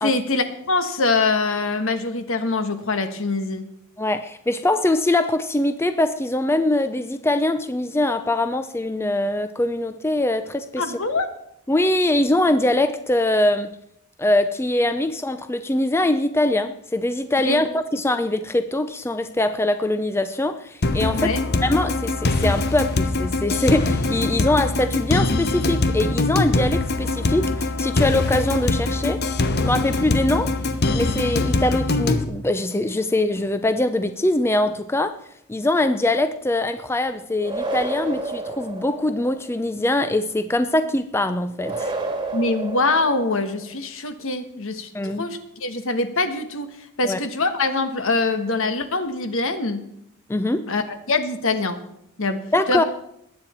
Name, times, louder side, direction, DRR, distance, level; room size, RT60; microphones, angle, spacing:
voice 1, 0.0-3.7 10.8-11.3 17.4-17.6 21.1-21.4 42.3-49.8 50.7-51.8 52.2-52.8, left 3 dB, 65° left, 9 dB, 1.4 m, -24 dB
voice 2, 4.0-10.9 11.7-13.7 14.2-21.3 21.6-29.2 29.6-30.5 30.9-35.2 35.5-41.9 44.9-45.2 47.0-47.2 50.3-50.7 52.5-52.8, left 1 dB, 10° left, 10 dB, 0.5 m, -22 dB
sound 1, 20.8-32.2, left 2 dB, 50° left, 0.9 m, -22 dB
sound 2, 37.4-39.5 41.6-43.7, right 2 dB, 20° right, 1.7 m, -30 dB
20.5 x 9.0 x 4.3 m, 0.76 s
head